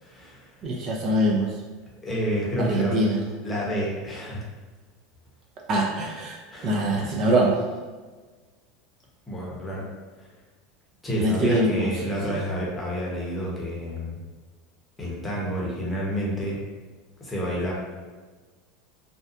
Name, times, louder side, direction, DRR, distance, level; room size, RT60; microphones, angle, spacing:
voice 1, 0.0-0.5 2.0-3.0 3.4-4.4 6.5-7.1 9.3-9.8 11.0-14.2 15.0-16.6 17.2-17.7, equal, 15° left, -5 dB, 0.7 m, -29 dB
voice 2, 0.6-1.5 2.6-3.2 5.7-7.6 11.1-11.9 12.3-12.4, right 1 dB, 45° right, 0 dB, 0.4 m, -23 dB
2.6 x 2.2 x 2.4 m, 1.3 s
supercardioid pair, 130°, 0 cm